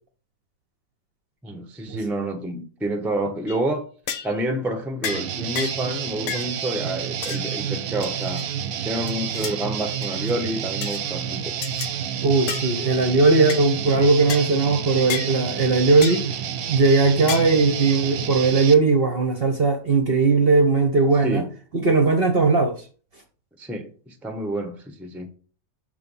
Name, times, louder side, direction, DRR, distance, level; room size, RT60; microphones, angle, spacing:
voice 1, 1.4-3.9 4.2-8.4 8.8-11.5 21.2-21.5 23.6-25.3, right 1 dB, ahead, 0.4 m, -28 dB
sound 1, 3.5-3.7 4.1-4.4 5.0-5.3 5.6-5.9 6.3-6.5 7.2-7.5 8.0-8.5 9.1-9.6 10.0-10.3 10.8-11.0 11.6-11.9 12.5-12.7 13.5-13.6 14.3-14.5 15.1-15.3 16.0-16.3 17.3-17.6, left 9 dB, 80° left, 1.3 m, -31 dB
Guitar, 5.0-18.7, right 8 dB, 65° right, 1.0 m, -29 dB
voice 2, 12.2-16.2 16.7-21.4 21.7-22.7, right 3 dB, 50° right, 0.8 m, -18 dB
6.8 x 3.4 x 5.4 m
omnidirectional pair, 1.8 m